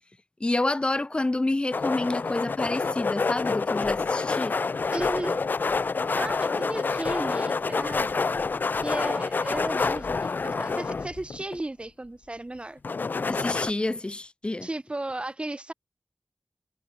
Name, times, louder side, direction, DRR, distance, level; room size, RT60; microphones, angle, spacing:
voice 1, 0.4-4.6 13.3-14.7, left 2 dB, 35° left, 0.7 m, -28 dB
sound 1, 1.7-11.6 12.8-13.7, left 4 dB, 85° left, 1.3 m, -27 dB
voice 2, 4.9-5.4 6.2-8.2 8.8-12.8 14.6-15.7, right 2 dB, 35° right, 2.7 m, -35 dB
cardioid pair, 45°, 3 cm